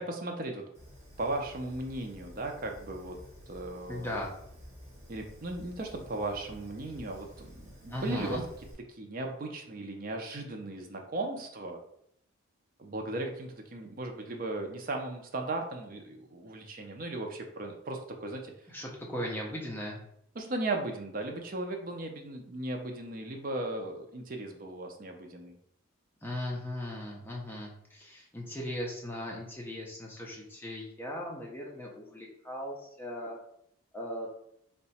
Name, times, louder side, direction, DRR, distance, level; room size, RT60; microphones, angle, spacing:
voice 1, 0.1-0.6 1.2-3.2 3.5-4.1 5.1-8.4 9.0-11.8 12.8-18.5 20.4-25.5, right 2 dB, 40° right, 3 dB, 0.5 m, -36 dB
Fire, 0.7-8.7, equal, 15° right, 1.5 m, -51 dB
voice 2, 3.9-4.3 7.9-8.4 18.7-20.0 26.2-33.4 33.9-34.3, left 1 dB, 10° left, -2 dB, 0.5 m, -38 dB
2.8 x 2.2 x 4.1 m, 0.73 s
head